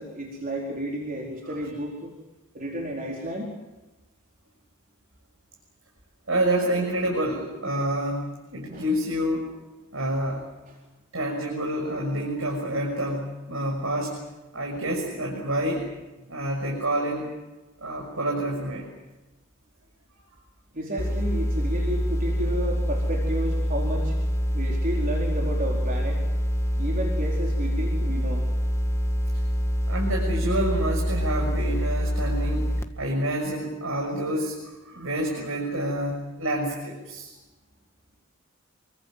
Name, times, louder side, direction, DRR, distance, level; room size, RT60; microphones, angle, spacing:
voice 1, 0.0-2.1 2.5-3.5 8.7-8.8 10.7-10.8 20.7-24.1 24.5-26.2 26.8-28.4, right 1 dB, 45° right, -1 dB, 4.6 m, -32 dB
voice 2, 6.3-9.5 9.9-10.4 11.1-14.2 14.5-15.9 16.3-17.3 17.8-18.9 29.9-32.7 33.0-34.6 34.9-37.3, right 1 dB, 80° right, -1 dB, 6.6 m, -28 dB
sound 1, 21.0-32.8, equal, 15° left, 1.7 m, -25 dB
28.5 x 23.5 x 7.7 m, 1.1 s
head